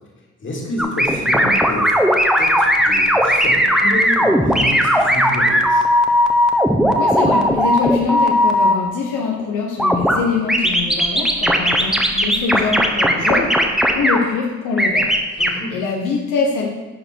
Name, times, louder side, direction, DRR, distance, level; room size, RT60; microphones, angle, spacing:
voice 1, 0.4-2.0 2.4-5.9 15.4-15.8, left 1 dB, 40° left, -2 dB, 2.6 m, -29 dB
sound 1, 0.8-8.7 9.8-10.2 10.5-14.2 14.8-15.5, equal, ahead, 1.0 m, -16 dB
voice 2, 7.0-13.5 13.9-16.7, left 5 dB, 90° left, 0 dB, 1.1 m, -23 dB
11.0 x 4.6 x 4.6 m, 1.2 s
cardioid pair, 90°, 30 cm